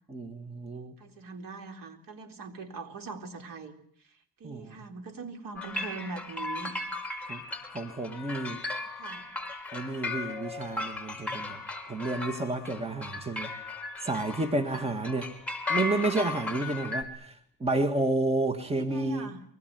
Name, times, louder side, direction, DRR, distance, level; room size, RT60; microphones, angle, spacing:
voice 1, 0.1-0.9 4.4-4.8 7.3-7.4 7.7-8.6 9.7-11.6 11.9-13.5 14.0-15.3 15.7-19.3, right 2 dB, 15° right, 8 dB, 2.0 m, -30 dB
voice 2, 1.0-3.7 4.4-6.7 9.0-9.3 14.7-14.9 18.7-19.4, right 4 dB, 55° right, 6 dB, 4.0 m, -41 dB
sound 1, 5.6-17.0, left 3 dB, 5° left, 5.4 m, -36 dB
23.5 x 21.0 x 9.5 m, 0.67 s
cardioid pair, 100°, 40 cm